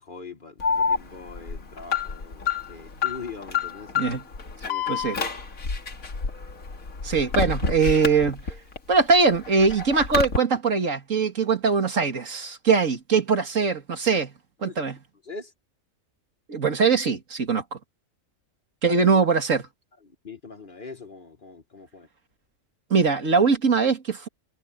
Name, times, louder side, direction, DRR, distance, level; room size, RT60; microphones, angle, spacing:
voice 1, 0.1-3.9 4.6-5.0 14.7-14.8 15.3-15.5 20.2-22.1, left 4 dB, 40° left, 1.3 m, -41 dB
Alarm, 0.6-8.8 9.1-10.4, left 5 dB, 90° left, 2.8 m, -28 dB
voice 2, 4.9-5.2 7.0-8.4 8.9-14.3 14.6-15.0 16.5-17.6 18.8-19.7 22.9-24.3, right 5 dB, 70° right, 2.5 m, -22 dB
omnidirectional pair, 1.4 m